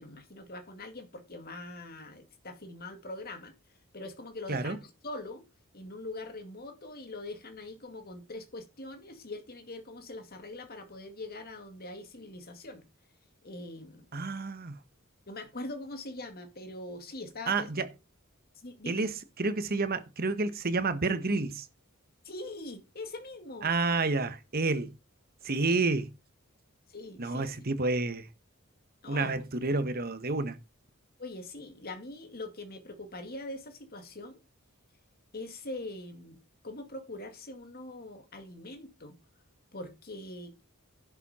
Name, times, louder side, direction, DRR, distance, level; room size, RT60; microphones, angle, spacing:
voice 1, 0.0-3.6 3.9-5.4 5.7-12.8 13.4-14.1 15.3-17.7 18.6-19.1 22.2-23.7 26.9-27.5 29.0-29.4 31.2-34.4 35.3-36.4 36.6-39.2 39.7-40.6, left 2 dB, 45° left, 2.2 m, -42 dB
voice 2, 14.1-14.7 17.5-17.9 18.9-21.6 23.6-24.9 25.4-26.1 27.2-28.3 29.1-30.6, right 3 dB, 45° right, 1.2 m, -29 dB
11.0 x 7.3 x 4.3 m
head